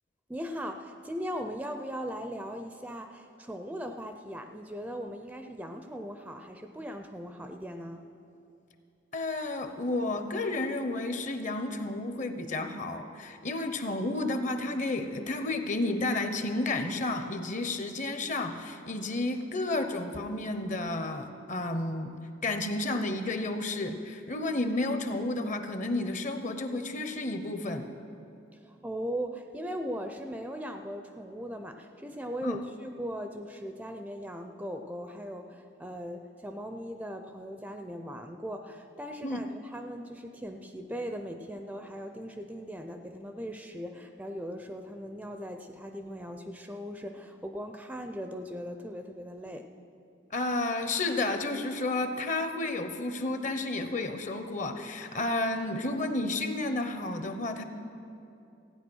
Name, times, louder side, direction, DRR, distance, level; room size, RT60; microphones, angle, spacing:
voice 1, 0.3-8.0 28.5-49.7, equal, 5° right, 6 dB, 0.4 m, -39 dB
voice 2, 9.1-22.1 22.4-27.9 32.4-32.6 39.2-39.4 50.3-57.6, left 2 dB, 40° left, 8 dB, 0.8 m, -31 dB
15.5 x 9.2 x 6.2 m, 2.7 s
head